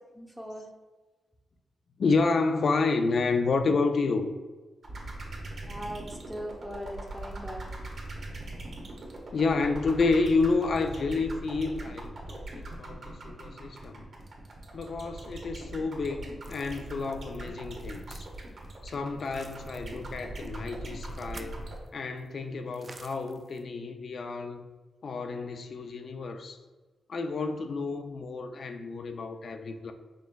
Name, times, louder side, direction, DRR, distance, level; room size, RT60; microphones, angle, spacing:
voice 1, 0.2-0.7 5.7-7.7, equal, ahead, -1 dB, 0.7 m, -39 dB
voice 2, 2.0-4.3 9.3-14.0 14.7-18.3 18.8-21.6 21.9-24.7 25.0-26.6 27.1-29.9, left 3 dB, 60° left, 7 dB, 0.3 m, -29 dB
sound 1, 4.8-21.8, right 2 dB, 55° right, 1.0 m, -40 dB
sound 2, 16.4-21.9 22.2-22.3 22.7-23.6, right 3 dB, 35° right, 0.3 m, -50 dB
5.1 x 3.6 x 2.2 m, 1.3 s
wide cardioid pair, 105°, 0 cm